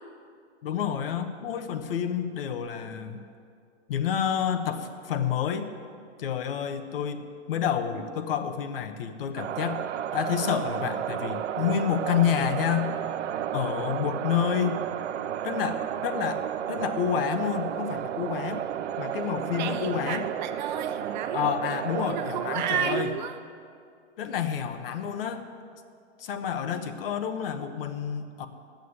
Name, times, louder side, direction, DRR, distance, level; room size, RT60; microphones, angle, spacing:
voice 1, 0.6-3.3 3.9-5.7 6.2-9.8 10.1-12.9 13.5-14.8 15.4-18.7 19.0-20.3 21.3-23.1 24.2-25.5 26.2-28.5, left 8 dB, 50° left, 8 dB, 1.2 m, -29 dB
sound 1, 9.4-23.0, right 10 dB, 75° right, 0.7 m, -32 dB
voice 2, 19.5-21.5 21.9-23.4, right 8 dB, 40° right, 7 dB, 1.1 m, -32 dB
13.0 x 9.4 x 9.6 m, 2.3 s
hypercardioid pair, 160°, 35 cm